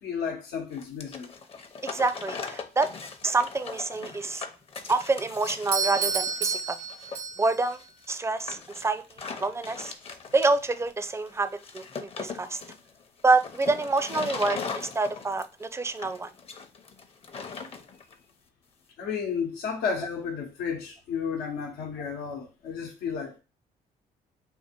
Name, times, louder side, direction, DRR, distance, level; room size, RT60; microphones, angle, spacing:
voice 1, 0.0-1.3 12.4-12.6 19.0-23.4, left 6 dB, 90° left, 1.0 m, -32 dB
sound 1, 0.7-18.1, left 5 dB, 40° left, 0.7 m, -39 dB
voice 2, 1.8-2.9 3.2-4.4 4.9-6.8 7.4-7.8 8.1-9.0 9.4-9.9 10.3-12.6 13.2-16.3, right 3 dB, 15° right, 0.5 m, -27 dB
Doorbell, 5.7-7.7, right 5 dB, 80° right, 1.0 m, -30 dB
3.6 x 2.5 x 4.4 m
cardioid pair, 80°, 16 cm